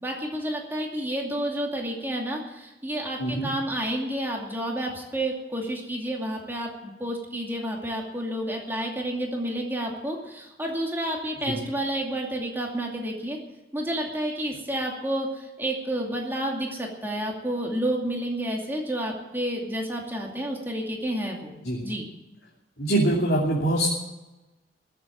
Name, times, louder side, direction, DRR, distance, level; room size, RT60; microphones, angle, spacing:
voice 1, 0.0-13.4 13.7-21.5 21.8-22.1, right 1 dB, 10° right, -1 dB, 2.5 m, -30 dB
voice 2, 22.8-23.9, right 1 dB, 70° left, -3 dB, 2.9 m, -23 dB
21.0 x 8.1 x 7.6 m, 1.0 s
head